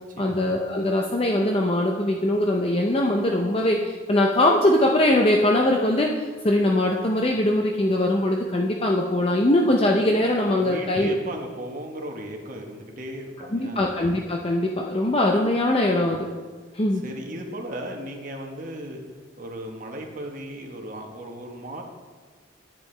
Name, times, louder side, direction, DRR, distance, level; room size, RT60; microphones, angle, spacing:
voice 1, 0.2-11.2 13.5-16.3 16.7-17.0, left 1 dB, 30° left, 1 dB, 0.5 m, -22 dB
voice 2, 10.6-13.9 16.9-19.0 19.4-21.8, right 1 dB, 45° right, 1 dB, 1.1 m, -36 dB
10.0 x 8.5 x 3.3 m, 1.4 s
head